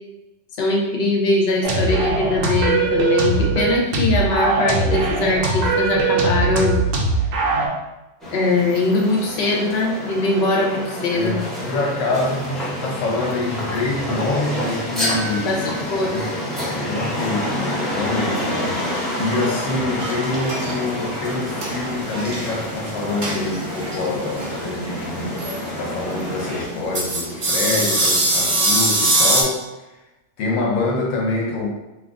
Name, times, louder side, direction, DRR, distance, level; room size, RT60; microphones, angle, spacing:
voice 1, 0.6-6.8 8.3-11.4 15.5-15.6 15.9-16.2, left 2 dB, 60° left, -1 dB, 0.9 m, -21 dB
sound 1, 1.6-7.7, right 3 dB, 80° right, 1.0 m, -20 dB
sound 2, 8.2-26.7, left 1 dB, ahead, 0.6 m, -28 dB
voice 2, 11.1-16.2 16.8-25.5 25.8-29.6 30.4-31.7, left 2 dB, 85° left, -1 dB, 1.0 m, -26 dB
sound 3, 20.0-29.4, right 2 dB, 55° right, 0.7 m, -24 dB
2.8 x 2.3 x 3.6 m, 1.0 s
omnidirectional pair, 1.3 m